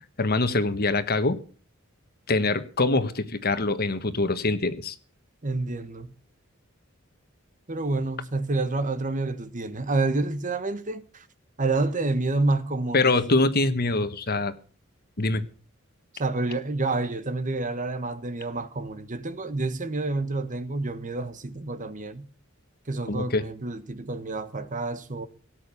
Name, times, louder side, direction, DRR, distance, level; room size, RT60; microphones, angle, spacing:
voice 1, 0.2-1.4 2.3-4.9 12.9-14.5 15.2-15.4 23.1-23.4, left 2 dB, 50° left, 1.4 m, -24 dB
voice 2, 5.4-6.1 7.7-11.3 11.6-13.1 16.1-22.3 22.9-25.3, right 2 dB, 40° right, 1.2 m, -28 dB
18.0 x 8.9 x 7.1 m
head